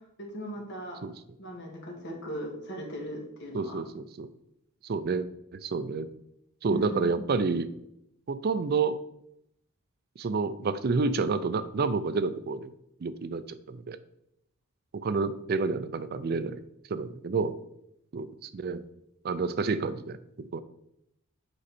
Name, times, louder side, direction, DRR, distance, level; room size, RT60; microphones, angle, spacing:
voice 1, 0.2-1.0 1.4-3.8 6.7-7.2, equal, 55° left, 0 dB, 2.0 m, -38 dB
voice 2, 3.5-4.3 4.8-5.3 5.5-6.1 6.6-7.7 8.3-9.0 10.2-12.7 13.0-14.0 14.9-16.6 16.9-17.6 18.1-18.8 19.2-20.6, right 4 dB, 45° right, 13 dB, 0.4 m, -29 dB
7.8 x 5.3 x 4.3 m, 0.79 s
head